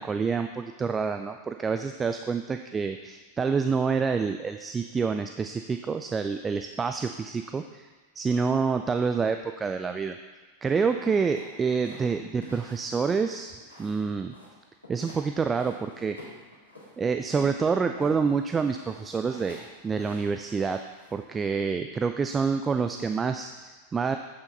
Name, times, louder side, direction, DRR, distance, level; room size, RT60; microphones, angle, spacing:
voice 1, 0.0-7.9 8.2-10.2 10.6-13.5 13.8-14.3 14.9-16.2 17.0-20.8 21.1-24.2, right 5 dB, 15° right, 7 dB, 0.3 m, -27 dB
sound 1, 11.3-14.0 14.3-15.2 15.5-16.9 17.3-21.2, left 1 dB, 90° right, 2.6 m, -48 dB
8.1 x 6.5 x 3.9 m, 1.3 s
figure-of-eight pair, 90°, 0 cm